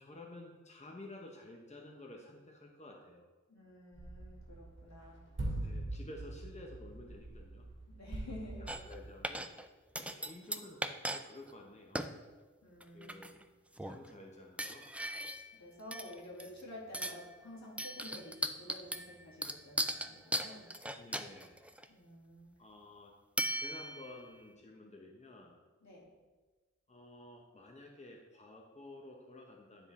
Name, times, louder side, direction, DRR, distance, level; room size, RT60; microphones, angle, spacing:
voice 1, 0.0-3.3 5.5-7.7 8.6-9.5 10.0-12.0 12.9-13.3 13.8-14.9 21.0-21.6 22.6-23.1 23.6-25.6 26.9-29.9, left 2 dB, 25° left, 0 dB, 0.9 m, -52 dB
voice 2, 3.5-5.2 7.9-8.8 12.6-13.3 15.6-20.7 21.9-22.5 25.8-26.0, left 1 dB, 70° left, -5 dB, 2.1 m, -50 dB
sound 1, 3.9-9.3, right 1 dB, 40° right, 2.1 m, -43 dB
sound 2, 8.7-9.0 9.2-9.7 9.9-11.2 11.5-11.6 11.9-12.1 12.8-13.4 13.8-14.1 14.6-15.5 15.9-16.6 16.9-17.3 17.8-21.8 23.4-24.2, right 1 dB, 5° right, 0.4 m, -38 dB
9.5 x 3.8 x 4.2 m, 1.3 s
wide cardioid pair, 65°, 29 cm